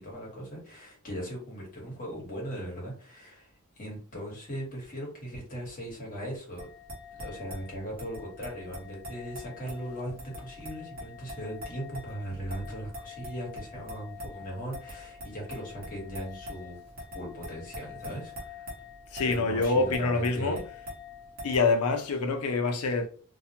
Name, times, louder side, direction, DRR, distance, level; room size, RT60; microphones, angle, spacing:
voice 1, 0.0-6.7 7.1-16.8 17.1-18.7 19.3-20.6, equal, 40° left, 1.1 m, -39 dB
sound 1, 6.6-21.6, left 2 dB, 45° right, 0.9 m, -44 dB
voice 2, 19.1-20.6 21.4-23.1, left 3 dB, 80° left, 0.5 m, -26 dB
2.3 x 2.1 x 2.7 m
head